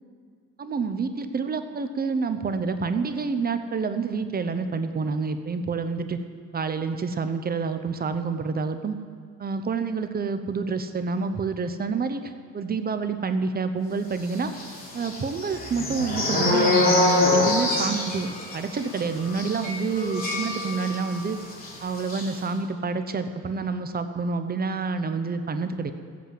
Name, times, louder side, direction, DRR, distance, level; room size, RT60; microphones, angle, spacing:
voice 1, 0.6-6.2 6.5-9.0 9.4-14.5 14.9-21.4 21.8-25.9, right 4 dB, 30° right, 9 dB, 0.8 m, -28 dB
sound 1, 14.5-21.2 21.5-21.7 22.0-22.3, left 2 dB, 30° left, 3.7 m, -25 dB
14.5 x 8.4 x 7.7 m, 2.1 s
cardioid pair, 115°, 31 cm